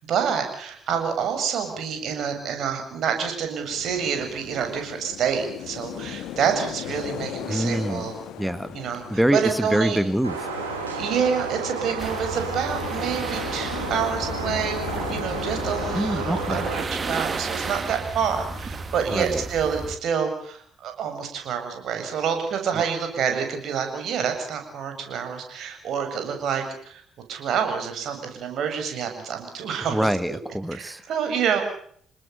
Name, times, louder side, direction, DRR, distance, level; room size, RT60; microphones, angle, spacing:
voice 1, 0.1-8.1 8.7-9.0 9.3-10.0 11.0-14.8 15.1-27.0 27.3-30.0 30.8-31.6, right 7 dB, 55° right, 6 dB, 7.4 m, -27 dB
sound 1, 3.7-18.1, left 10 dB, 65° left, 2.2 m, -38 dB
voice 2, 7.5-8.1 8.4-8.8 9.1-10.6 16.0-16.7 19.1-19.4 22.7-22.8 29.9-31.0, right 1 dB, 5° right, 12 dB, 1.9 m, -25 dB
sound 2, 10.2-16.8, right 4 dB, 85° right, 6.3 m, -32 dB
sound 3, 12.0-20.0, right 3 dB, 35° right, 3.2 m, -33 dB
29.0 x 19.5 x 7.0 m, 0.62 s
figure-of-eight pair, 50°, 0 cm